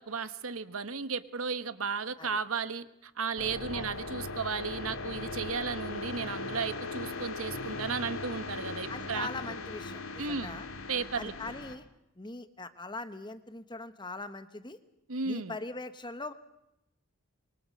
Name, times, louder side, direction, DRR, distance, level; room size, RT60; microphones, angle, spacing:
voice 1, 0.1-9.3 10.2-10.6 10.9-11.3 15.1-15.5, right 5 dB, 70° right, 13 dB, 1.2 m, -34 dB
sound 1, 3.4-11.8, left 3 dB, 70° left, 2.4 m, -39 dB
voice 2, 8.9-10.7 11.2-11.9 12.2-14.8 15.2-16.3, left 2 dB, 20° left, 11 dB, 1.2 m, -41 dB
25.5 x 23.5 x 6.5 m, 0.86 s
head